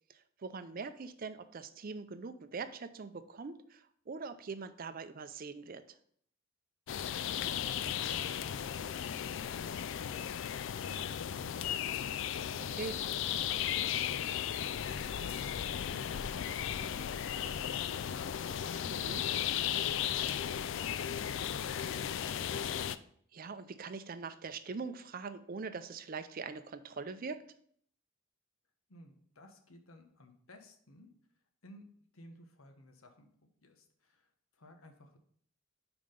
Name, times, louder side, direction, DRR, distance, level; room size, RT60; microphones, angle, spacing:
voice 1, 0.1-6.0 12.7-13.0 18.9-19.2 23.3-27.4, right 4 dB, 45° right, 11 dB, 0.5 m, -42 dB
sound 1, 6.9-23.0, left 9 dB, 60° left, 0.3 m, -35 dB
voice 2, 28.9-31.1 31.6-31.9 32.1-35.2, left 1 dB, 90° left, 6 dB, 1.0 m, -57 dB
5.6 x 4.9 x 5.1 m, 0.62 s
head